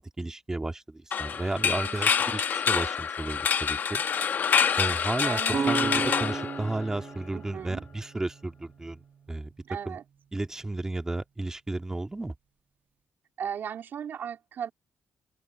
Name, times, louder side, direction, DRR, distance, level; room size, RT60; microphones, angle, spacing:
voice 1, 0.0-4.0 4.8-9.0 9.3-10.0 10.3-12.3, right 2 dB, 15° right, 1.9 m, -33 dB
sound 1, 1.1-7.1, left 7 dB, 50° left, 1.0 m, -27 dB
voice 2, 1.6-2.2 3.9-4.3 5.2-5.8 7.3-7.8 9.6-10.0 13.4-14.7, right 8 dB, 60° right, 3.4 m, -37 dB
sound 2, 5.5-9.3, right 5 dB, 40° right, 1.1 m, -34 dB
open air
cardioid pair, 105°, 4 cm